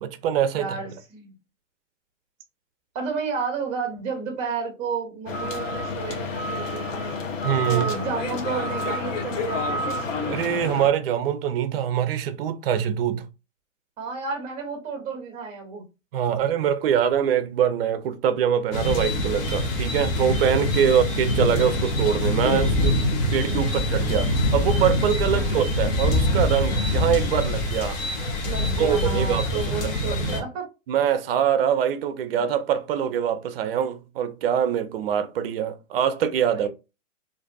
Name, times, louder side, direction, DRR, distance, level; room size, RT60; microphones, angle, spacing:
voice 1, 0.0-0.7 7.4-7.9 10.2-13.2 16.1-23.0 23.3-28.0 28.8-29.9 30.2-30.4 30.9-36.7, right 9 dB, 50° right, 0.5 m, -24 dB
voice 2, 0.6-1.3 2.9-7.2 7.7-10.0 14.0-15.8 20.8-21.1 25.3-25.5 28.5-30.7 36.5-36.7, right 5 dB, 15° right, 0.8 m, -31 dB
sound 1, 5.3-10.9, left 2 dB, 75° left, 0.7 m, -29 dB
sound 2, 18.7-30.4, left 1 dB, 45° left, 0.8 m, -24 dB
2.6 x 2.4 x 2.2 m
hypercardioid pair, 135°, 39 cm